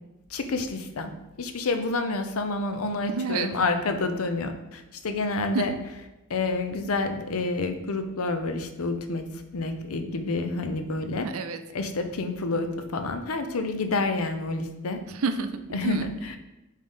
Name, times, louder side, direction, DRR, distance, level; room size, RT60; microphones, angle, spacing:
voice 1, 0.3-1.1 1.4-5.7 6.3-9.3 9.5-11.3 11.7-15.0 15.7-16.4, left 3 dB, 75° left, 7 dB, 0.6 m, -28 dB
voice 2, 3.1-3.5 5.5-5.7 11.2-11.6 15.1-16.1, right 4 dB, 70° right, 8 dB, 0.5 m, -29 dB
5.3 x 3.7 x 5.4 m, 0.99 s
head